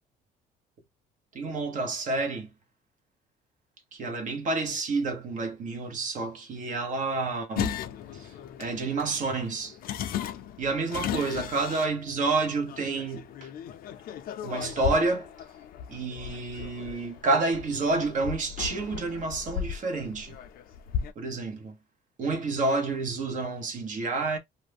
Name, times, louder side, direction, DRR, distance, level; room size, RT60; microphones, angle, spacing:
voice 1, 1.3-2.5 3.9-7.7 8.1-8.3 8.6-9.8 10.6-13.5 14.4-15.3 15.9-20.4 21.2-21.8 22.2-24.4, right 3 dB, 50° right, 0.9 m, -29 dB
sound 1, 7.6-21.1, left 9 dB, 60° left, 0.5 m, -36 dB
2.5 x 2.1 x 3.4 m
cardioid pair, 110°, 17 cm